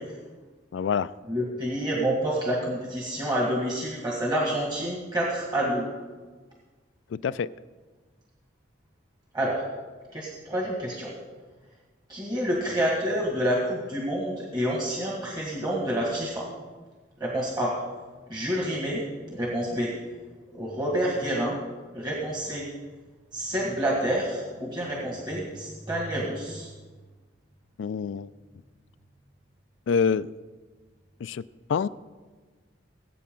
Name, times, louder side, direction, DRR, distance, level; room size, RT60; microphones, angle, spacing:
voice 1, 0.7-1.1 7.1-7.5 27.8-28.3 29.9-30.3 31.2-31.4 31.7-31.9, left 6 dB, 70° left, 16 dB, 0.3 m, -26 dB
voice 2, 1.3-5.9 9.3-9.6 10.1-11.1 12.1-16.5 17.2-17.8 18.3-19.0 19.3-19.9 20.5-21.6 21.9-22.7 23.3-26.7, right 1 dB, 25° right, -3 dB, 1.9 m, -28 dB
19.5 x 8.5 x 3.8 m, 1.4 s
head